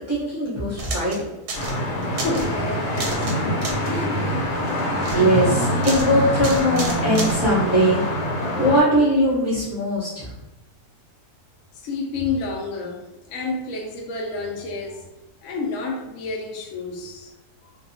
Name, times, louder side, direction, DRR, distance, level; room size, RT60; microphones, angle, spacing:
voice 1, 0.1-1.2 5.1-8.0 8.6-10.3, equal, 20° right, -10 dB, 0.4 m, -20 dB
sound 1, 0.8-1.2 1.5-1.8 2.0-2.5 3.0-3.4 3.6-4.0 4.7-5.2 5.8-6.1 6.4-7.4, right 3 dB, 85° right, 1.2 m, -31 dB
sound 2, 1.5-8.8, equal, 90° left, 1.3 m, -24 dB
voice 2, 2.1-4.5 11.8-13.0 13.3-15.0 15.4-17.3, left 3 dB, 70° left, -1 dB, 0.9 m, -30 dB
2.7 x 2.2 x 2.6 m, 0.98 s
omnidirectional pair, 1.7 m